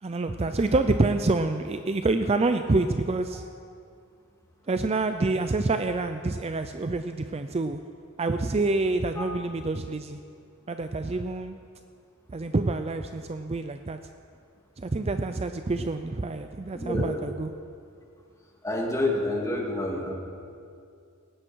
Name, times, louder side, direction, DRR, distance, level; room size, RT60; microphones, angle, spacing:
voice 1, 0.0-3.4 4.7-7.8 8.2-10.2 10.7-11.6 12.3-14.0 14.8-17.5, right 3 dB, 30° right, 8 dB, 0.5 m, -27 dB
voice 2, 16.7-17.2 18.6-20.1, left 1 dB, 15° left, -1 dB, 2.3 m, -28 dB
18.5 x 16.0 x 4.6 m, 2.4 s
head